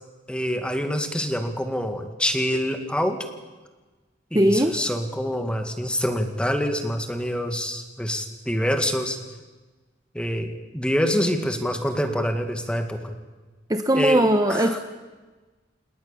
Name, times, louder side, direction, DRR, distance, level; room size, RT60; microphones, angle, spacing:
voice 1, 0.3-3.2 4.3-9.2 10.1-13.2 13.9-14.2 14.5-14.8, equal, 5° left, 6 dB, 2.1 m, -26 dB
voice 2, 4.3-4.7 13.7-14.8, right 1 dB, 20° right, 6 dB, 1.0 m, -19 dB
28.0 x 19.5 x 7.2 m, 1.3 s
head